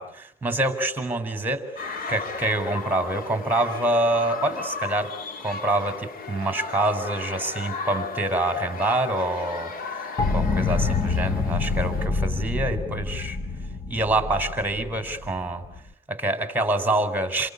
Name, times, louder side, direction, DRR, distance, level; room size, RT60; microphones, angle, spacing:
voice 1, 0.0-5.1 5.4-9.7 10.3-13.4 13.9-15.6 16.1-17.5, right 2 dB, 10° right, 9 dB, 4.6 m, -26 dB
sound 1, 1.8-12.1, left 4 dB, 60° left, 3.0 m, -35 dB
sound 2, 10.2-15.9, left 4 dB, 25° left, 1.2 m, -27 dB
30.0 x 23.5 x 8.4 m, 0.71 s
cardioid pair, 110°, 17 cm